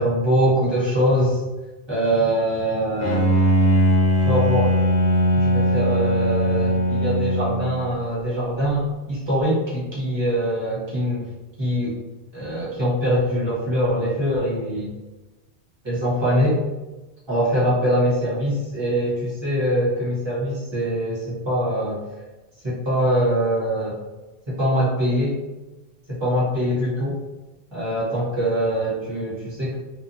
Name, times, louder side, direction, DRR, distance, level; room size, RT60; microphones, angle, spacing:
voice 1, 0.0-1.4 1.9-3.3 4.2-4.7 5.3-11.3 11.6-12.0 12.3-14.9 15.8-16.6 17.3-22.0 22.6-24.0 24.5-25.4 26.1-27.2 27.7-29.7, equal, 25° right, -8 dB, 1.2 m, -23 dB
Bowed string instrument, 3.0-8.0, equal, 70° left, 1.0 m, -20 dB
3.0 x 2.2 x 2.6 m, 1.1 s
omnidirectional pair, 1.1 m